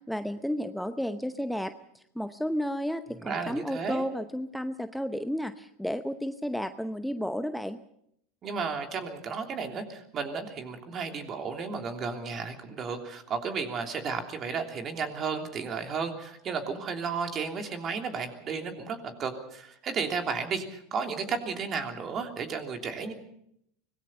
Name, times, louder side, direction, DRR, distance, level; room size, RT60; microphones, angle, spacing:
voice 1, 0.1-7.8, equal, ahead, 10 dB, 0.9 m, -32 dB
voice 2, 3.1-4.0 8.4-23.1, right 5 dB, 35° right, 5 dB, 3.1 m, -33 dB
25.0 x 19.0 x 5.6 m, 0.72 s
figure-of-eight pair, 80°, 0 cm